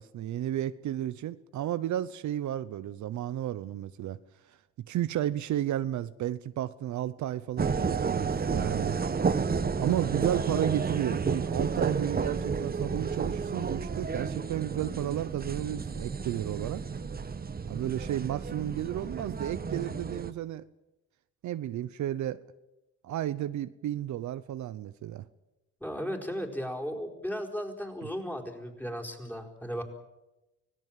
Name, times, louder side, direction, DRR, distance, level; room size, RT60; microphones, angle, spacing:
voice 1, 0.0-4.2 4.9-9.0 9.8-16.8 17.7-20.6 21.4-22.4 23.0-25.2, right 12 dB, 70° right, 0.8 m, -32 dB
sound 1, 7.6-20.3, right 5 dB, 30° right, 1.3 m, -31 dB
voice 2, 25.8-29.8, equal, 5° left, 4.6 m, -35 dB
25.5 x 17.5 x 7.5 m
cardioid pair, 90°, 30 cm